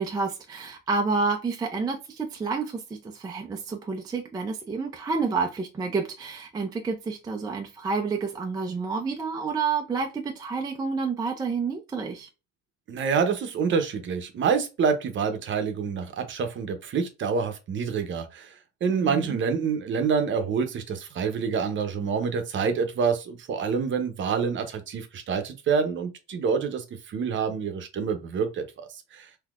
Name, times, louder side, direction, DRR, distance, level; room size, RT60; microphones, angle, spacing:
voice 1, 0.0-12.3 18.9-19.4, right 4 dB, 15° right, 0.4 m, -29 dB
voice 2, 12.9-18.5 18.8-28.9 29.1-29.3, right 6 dB, 40° right, 0.8 m, -27 dB
3.8 x 2.7 x 2.3 m
cardioid pair, 130°, 32 cm